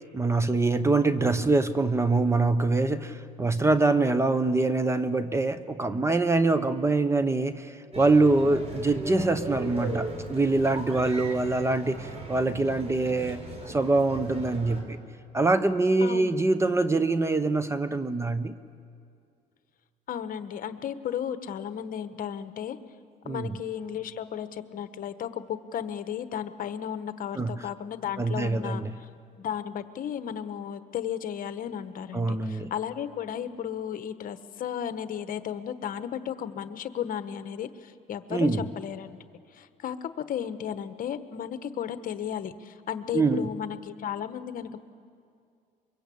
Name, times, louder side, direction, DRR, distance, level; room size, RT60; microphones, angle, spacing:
voice 1, 0.1-15.0 15.3-18.6 23.2-23.5 27.3-27.6 28.2-28.9 32.1-32.7 38.3-38.6 43.1-43.5, right 3 dB, 15° right, 12 dB, 0.9 m, -24 dB
sound 1, 7.9-14.8, right 2 dB, 40° right, 4.6 m, -37 dB
voice 2, 16.0-16.3 20.1-22.8 23.2-29.1 29.4-39.2 39.5-44.8, left 9 dB, 55° left, 11 dB, 1.1 m, -34 dB
24.5 x 22.5 x 8.4 m, 2.3 s
cardioid pair, 110°, 17 cm